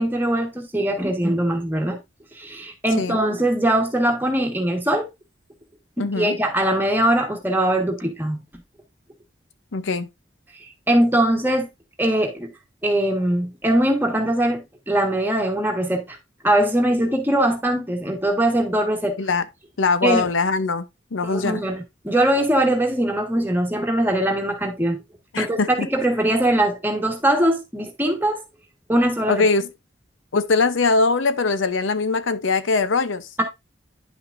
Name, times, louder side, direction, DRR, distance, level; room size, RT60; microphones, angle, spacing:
voice 1, 0.0-2.0 2.3-5.1 6.0-8.4 10.9-11.7 12.0-12.5 12.8-16.2 16.4-19.1 20.0-20.3 21.2-25.0 25.4-25.6 25.9-28.4 28.9-29.4 33.4-33.5, right 1 dB, 10° right, 1.4 m, -21 dB
voice 2, 6.0-6.4 9.7-10.1 19.2-19.4 19.8-20.8 21.1-21.6 25.3-25.9 29.3-29.7 30.3-33.3, left 4 dB, 90° left, 0.7 m, -21 dB
9.8 x 5.9 x 2.5 m
head